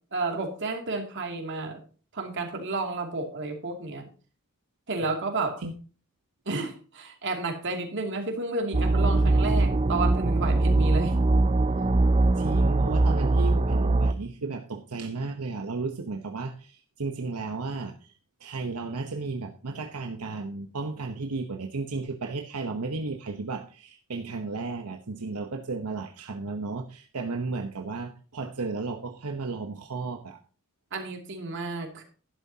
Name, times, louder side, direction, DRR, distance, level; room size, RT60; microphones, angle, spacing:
voice 1, 0.1-1.8 2.1-4.1 4.9-5.6 6.5-11.2 30.9-32.0, right 3 dB, 55° right, 3 dB, 2.6 m, -31 dB
sound 1, 8.7-14.1, right 2 dB, 30° right, 0.6 m, -22 dB
voice 2, 12.4-18.1 18.4-30.4, right 3 dB, 85° right, 3 dB, 1.0 m, -34 dB
12.0 x 11.0 x 2.8 m, 0.39 s
head